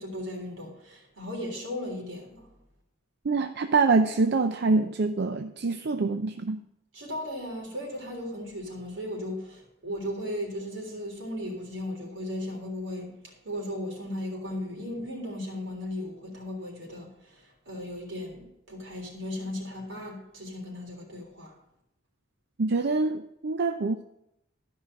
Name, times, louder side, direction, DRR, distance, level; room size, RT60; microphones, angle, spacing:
voice 1, 0.0-2.4 6.9-21.5, left 1 dB, 80° right, 3.6 m, -36 dB
voice 2, 3.2-6.6 22.6-24.0, right 3 dB, 60° right, 0.5 m, -25 dB
13.0 x 5.6 x 6.0 m
head